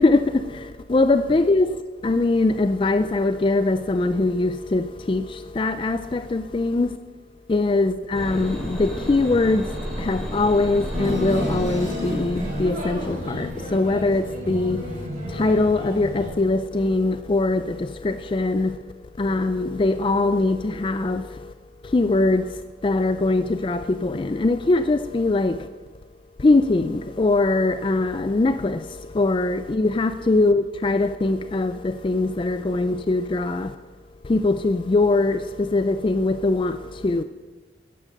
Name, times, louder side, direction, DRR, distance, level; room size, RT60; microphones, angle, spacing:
voice 1, 0.0-7.0 7.5-18.8 19.2-21.5 21.8-25.7 26.4-33.8 34.2-37.2, left 2 dB, 30° left, 0.3 m, -22 dB
sound 1, 8.1-13.5, equal, ahead, 3.4 m, -32 dB
sound 2, 10.9-16.3, left 1 dB, 45° right, 4.4 m, -31 dB
13.0 x 10.5 x 6.6 m
head